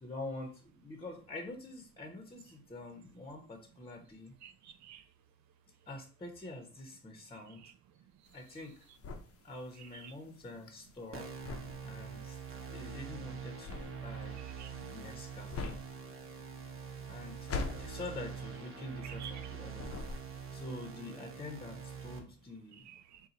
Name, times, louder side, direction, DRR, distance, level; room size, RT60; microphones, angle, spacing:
voice 1, 0.0-4.3 5.9-7.6 8.3-8.7 9.4-11.3 11.8-12.4 12.7-14.4 14.9-15.8 17.1-17.5 17.8-19.9 20.5-22.8, left 2 dB, 20° left, 0.8 m, -46 dB
voice 2, 4.4-5.0 7.3-7.7 9.8-10.1 14.4-14.7 19.0-19.3 22.8-23.2, right 9 dB, 65° right, 0.5 m, -51 dB
sound 1, 8.3-19.5 19.7-20.6, left 3 dB, 50° left, 0.7 m, -43 dB
sound 2, 11.1-22.2, right 6 dB, 45° right, 1.0 m, -44 dB
4.3 x 2.3 x 3.9 m
cardioid pair, 90°, 30 cm